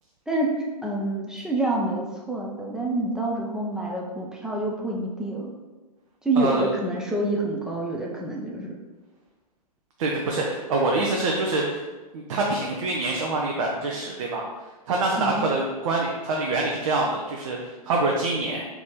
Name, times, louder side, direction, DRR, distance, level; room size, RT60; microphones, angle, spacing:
voice 1, 0.3-5.5 6.2-8.7 15.2-15.5, right 2 dB, 5° right, -3 dB, 0.5 m, -27 dB
voice 2, 6.4-6.7 10.0-11.8 12.1-14.4 14.9-18.6, right 2 dB, 55° right, -1 dB, 0.7 m, -25 dB
4.1 x 2.9 x 3.7 m, 1.2 s
figure-of-eight pair, 115°, 20 cm